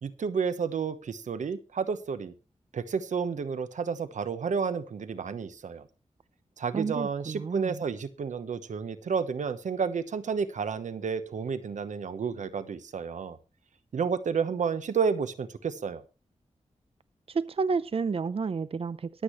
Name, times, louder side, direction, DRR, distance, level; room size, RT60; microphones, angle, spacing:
voice 1, 0.0-2.3 2.7-5.9 6.6-13.4 13.9-16.0, right 6 dB, 90° right, 13 dB, 1.0 m, -31 dB
voice 2, 6.7-7.8 17.3-19.2, right 5 dB, 50° right, 15 dB, 0.6 m, -30 dB
23.0 x 8.3 x 3.2 m, 0.31 s
wide cardioid pair, 85°, 12 cm